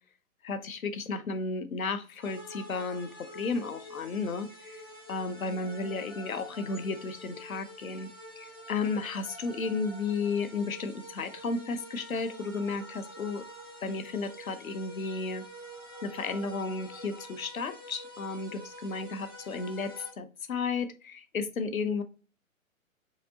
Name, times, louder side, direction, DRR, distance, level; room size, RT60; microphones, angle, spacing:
voice 1, 0.4-4.8 5.1-8.1 8.4-13.4 13.8-15.4 16.0-22.0, left 4 dB, 75° left, 10 dB, 0.7 m, -33 dB
sound 1, 2.2-20.1, equal, 20° left, 0.3 m, -47 dB
4.9 x 2.9 x 2.7 m, 0.36 s
figure-of-eight pair, 125°, 42 cm